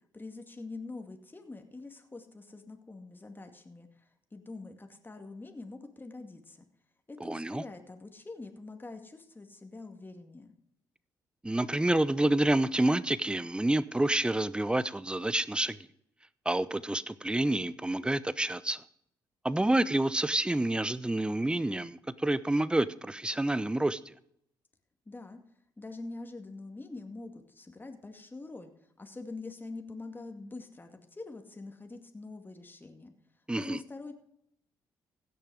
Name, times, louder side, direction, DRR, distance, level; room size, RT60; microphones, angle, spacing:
voice 1, 0.1-6.6 7.1-10.5 25.1-25.4 25.8-28.7 29.0-33.1 33.5-34.1, left 3 dB, 20° left, 5 dB, 2.2 m, -45 dB
voice 2, 7.2-7.6 11.4-15.8 16.4-18.8 19.4-24.0 33.5-33.8, right 1 dB, 10° right, 17 dB, 0.8 m, -28 dB
16.5 x 6.8 x 4.9 m, 0.71 s
hypercardioid pair, 50°, 9 cm